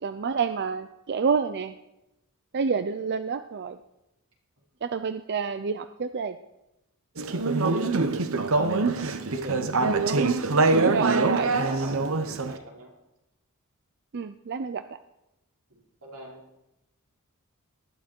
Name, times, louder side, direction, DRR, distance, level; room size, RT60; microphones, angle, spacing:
voice 1, 0.0-1.7 2.5-3.8 4.8-6.4 10.9-11.6 14.1-14.8, right 5 dB, 50° right, 10 dB, 0.5 m, -28 dB
Conversation / Chatter, 7.2-12.5, right 3 dB, 65° right, 0.9 m, -24 dB
voice 2, 7.2-7.9 8.4-9.7 10.7-12.9 15.7-16.4, right 1 dB, 85° right, -3 dB, 4.9 m, -42 dB
19.5 x 12.5 x 4.5 m, 0.92 s
head